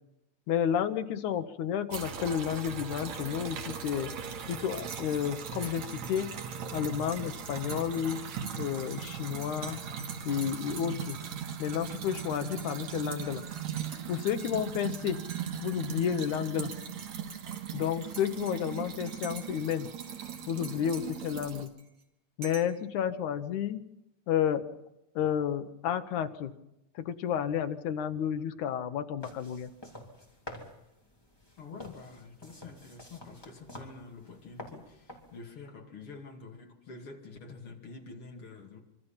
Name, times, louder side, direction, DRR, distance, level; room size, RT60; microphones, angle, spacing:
voice 1, 0.5-4.1 4.5-6.4 6.7-8.3 8.6-9.8 10.3-11.2 11.6-13.4 14.1-15.2 15.6-16.8 17.7-19.9 20.5-21.7 22.4-23.8 24.3-24.7 25.2-26.5 27.0-29.7, left 9 dB, 75° left, 9 dB, 2.4 m, -31 dB
sound 1, 1.9-21.7, right 7 dB, 65° right, 2.8 m, -39 dB
Dishes pots and pans / Cutlery silverware / Chink clink, 4.7-15.0 15.3-16.4 16.7-19.8 20.0-22.0 22.4-22.8, right 4 dB, 35° right, 2.9 m, -49 dB
sound 2, 29.2-35.4, left 1 dB, 10° left, 2.8 m, -49 dB
voice 2, 31.6-38.8, left 4 dB, 45° left, 2 dB, 3.2 m, -47 dB
26.0 x 24.5 x 5.7 m, 0.89 s
omnidirectional pair, 3.6 m